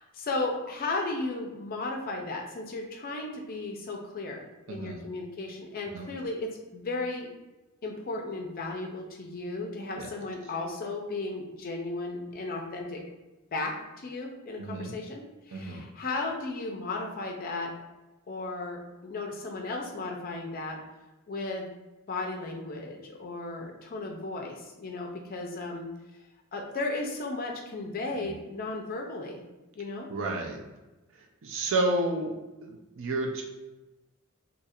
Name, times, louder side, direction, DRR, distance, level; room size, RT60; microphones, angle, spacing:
voice 1, 0.0-7.3 7.8-13.0 13.5-17.7 18.3-20.8 21.3-21.8 22.1-25.9 26.5-29.4 29.8-30.1, left 2 dB, 45° left, 1 dB, 0.4 m, -35 dB
voice 2, 4.7-5.0 5.9-6.1 10.0-10.1 14.6-14.9 15.5-15.8 28.2-28.3 30.1-30.6 31.1-32.3 32.6-33.4, right 2 dB, 60° right, 1 dB, 0.5 m, -31 dB
2.7 x 2.4 x 4.1 m, 1.1 s
head